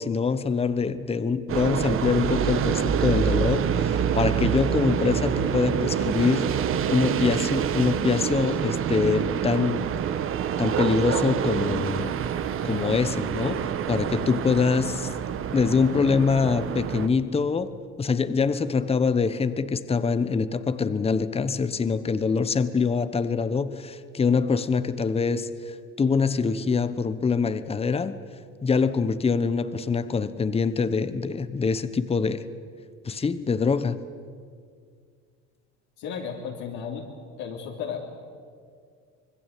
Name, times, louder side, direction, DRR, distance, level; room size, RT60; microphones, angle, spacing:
voice 1, 0.0-6.5 6.9-9.9 10.6-12.1 12.6-15.1 15.5-17.7 18.0-28.1 28.6-32.4 33.0-34.0, left 5 dB, 20° left, 13 dB, 1.1 m, -24 dB
sound 1, 1.5-17.1, right 8 dB, 45° right, 1.4 m, -26 dB
voice 2, 36.0-37.0 37.4-38.2, left 6 dB, 70° left, -2 dB, 3.3 m, -34 dB
25.5 x 21.0 x 8.4 m, 2.1 s
cardioid pair, 110°, 30 cm